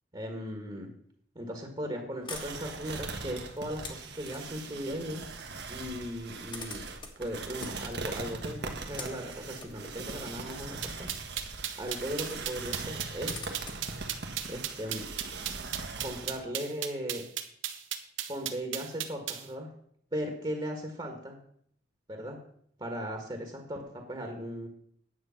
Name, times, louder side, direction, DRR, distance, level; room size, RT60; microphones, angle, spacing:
voice 1, 0.1-0.9 1.3-5.2 5.7-6.8 7.2-11.1 11.8-13.4 14.5-15.0 16.0-17.2 18.3-19.7 20.1-21.4 22.1-22.4 22.8-24.7, equal, 25° right, 3 dB, 1.6 m, -37 dB
sound 1, 2.2-4.7 5.8-5.9 6.1-11.6 11.9-12.0 12.8-15.3, left 4 dB, 25° left, 1.4 m, -48 dB
sound 2, 2.3-16.4, right 3 dB, 60° right, 1.5 m, -40 dB
sound 3, 10.8-19.5, right 11 dB, 80° right, 1.1 m, -35 dB
9.9 x 8.0 x 5.8 m, 0.64 s
head